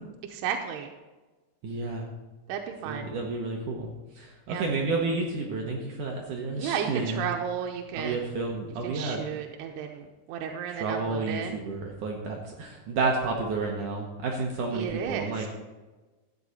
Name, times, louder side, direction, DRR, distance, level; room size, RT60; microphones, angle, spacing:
voice 1, 0.3-0.9 2.5-3.2 4.5-4.7 6.6-8.3 8.8-11.5 14.7-15.5, right 8 dB, 90° right, 3 dB, 2.8 m, -33 dB
voice 2, 1.6-2.1 2.8-7.3 7.9-9.2 10.7-15.5, right 3 dB, 65° right, 0 dB, 2.1 m, -31 dB
13.5 x 9.1 x 4.2 m, 1.2 s
omnidirectional pair, 4.7 m